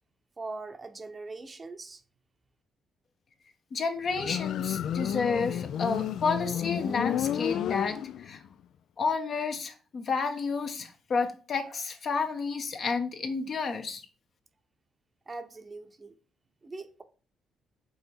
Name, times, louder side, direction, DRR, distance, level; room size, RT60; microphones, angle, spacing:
voice 1, 0.4-2.0 15.3-16.1 16.6-17.0, right 3 dB, 30° right, 0.8 m, -41 dB
voice 2, 3.7-8.4 9.0-14.0, left 4 dB, 55° left, 1.0 m, -31 dB
Motorcycle, 4.1-8.5, left 10 dB, 75° left, 0.3 m, -31 dB
5.4 x 3.9 x 4.5 m
cardioid pair, 90°, 0 cm